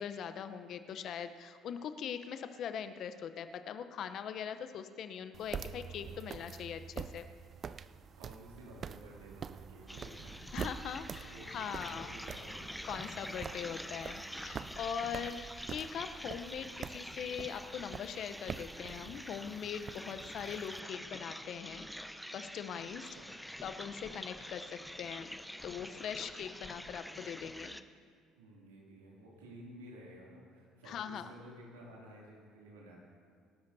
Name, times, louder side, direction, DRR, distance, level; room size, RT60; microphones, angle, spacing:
voice 1, 0.0-7.3 10.5-12.2 12.8-21.9 22.3-23.1 23.6-27.8 30.9-31.3, left 8 dB, 55° left, 10 dB, 0.8 m, -41 dB
sound 1, 5.3-20.8, right 7 dB, 45° right, 0.4 m, -46 dB
voice 2, 8.2-10.5 11.3-13.2 14.9-15.1 23.2-23.3 28.4-33.0, right 1 dB, 85° right, -3 dB, 2.7 m, -53 dB
sound 2, 9.9-27.8, equal, 5° left, 0.7 m, -46 dB
26.5 x 13.0 x 2.8 m, 2.1 s
hypercardioid pair, 55°, 0 cm